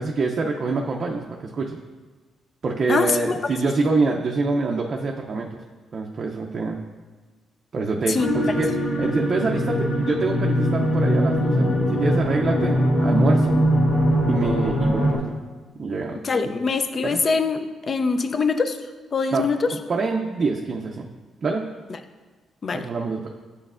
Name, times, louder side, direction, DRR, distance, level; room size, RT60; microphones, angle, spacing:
voice 1, 0.0-1.8 2.6-5.6 5.9-6.8 7.7-13.5 14.3-15.4 15.8-16.2 17.0-17.2 19.3-19.5 19.9-21.1 21.4-21.7 22.7-23.3, right 3 dB, 45° right, 0 dB, 0.4 m, -26 dB
voice 2, 2.9-3.9 8.1-8.3 16.2-18.8 19.1-19.7 22.6-22.8, left 4 dB, 40° left, 9 dB, 0.4 m, -23 dB
sound 1, 8.2-15.2, equal, 65° left, 1.6 m, -21 dB
8.0 x 5.4 x 2.4 m, 1.3 s
cardioid pair, 90°, 0 cm